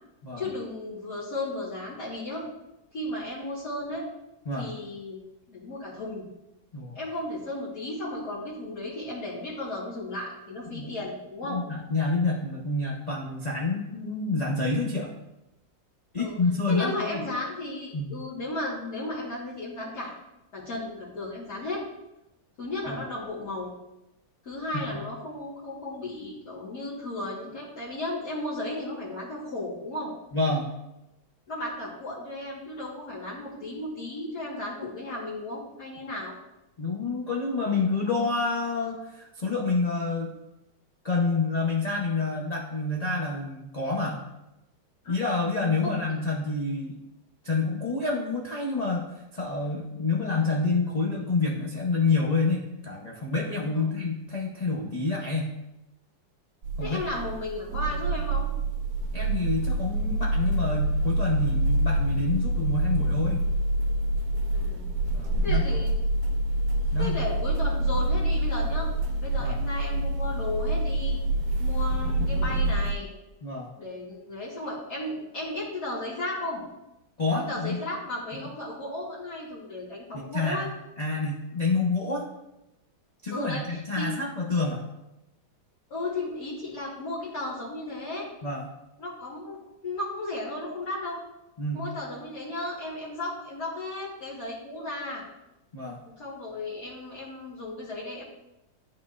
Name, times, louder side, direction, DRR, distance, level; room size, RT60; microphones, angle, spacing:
voice 1, 0.4-2.4 2.9-4.0 4.6-5.2 5.5-6.2 6.9-11.6 16.2-16.4 16.7-20.2 20.5-21.8 22.6-23.7 24.5-30.1 31.5-36.3 45.0-45.3 45.8-46.0 53.7-53.9 56.8-58.5 64.5-64.9 65.4-65.9 67.0-68.9 69.2-71.2 71.6-73.1 73.8-76.6 77.5-80.7 83.3-84.1 85.9-88.3 89.0-91.2 91.7-95.2 96.2-98.2, left 2 dB, 55° left, -8 dB, 1.9 m, -34 dB
voice 2, 11.5-15.1 16.1-17.2 17.9-18.1 22.9-23.0 24.7-25.0 30.3-30.7 36.8-40.3 41.0-44.2 45.1-47.0 47.4-55.5 56.8-57.0 59.1-63.5 65.1-65.8 66.9-67.2 69.4-69.6 73.4-73.7 77.2-77.8 78.3-78.5 80.1-80.7 81.0-82.3 83.2-84.8 88.4-88.7 91.6-91.8 95.7-96.0, left 3 dB, 70° left, -3 dB, 0.3 m, -28 dB
sound 1, 56.6-72.9, right 1 dB, 60° right, 1.0 m, -26 dB
11.5 x 4.3 x 2.4 m, 0.93 s
omnidirectional pair, 2.0 m